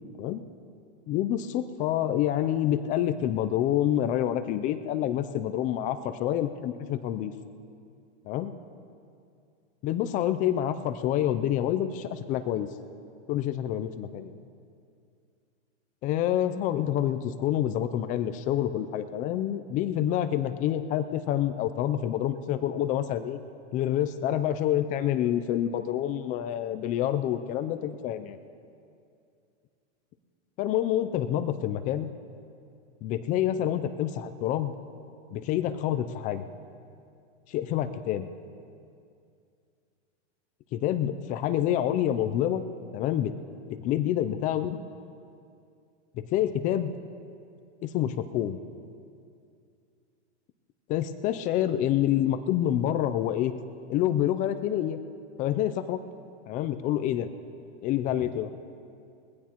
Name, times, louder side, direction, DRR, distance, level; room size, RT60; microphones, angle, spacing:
voice 1, 1.1-7.3 8.3-8.5 9.8-12.7 13.3-14.4 16.0-23.4 23.7-28.4 30.6-32.1 33.0-34.7 35.3-36.4 37.5-38.3 40.7-42.6 42.9-43.3 43.8-44.8 46.3-46.9 47.8-48.6 50.9-53.5 53.9-55.0 55.4-56.0 56.5-57.3 57.8-58.5, left 11 dB, 25° left, 10 dB, 0.4 m, -27 dB
21.0 x 15.5 x 2.9 m, 2.4 s
hypercardioid pair, 130°, 35 cm